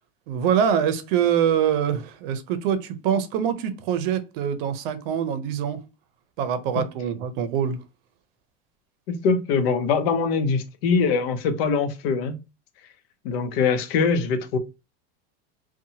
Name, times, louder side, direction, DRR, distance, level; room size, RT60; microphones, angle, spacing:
voice 1, 0.3-5.8 6.4-7.8, right 8 dB, 60° right, 0.6 m, -24 dB
voice 2, 9.1-12.4 13.2-14.6, left 5 dB, 70° left, 0.7 m, -23 dB
2.8 x 2.2 x 2.7 m
supercardioid pair, 155°, 30 cm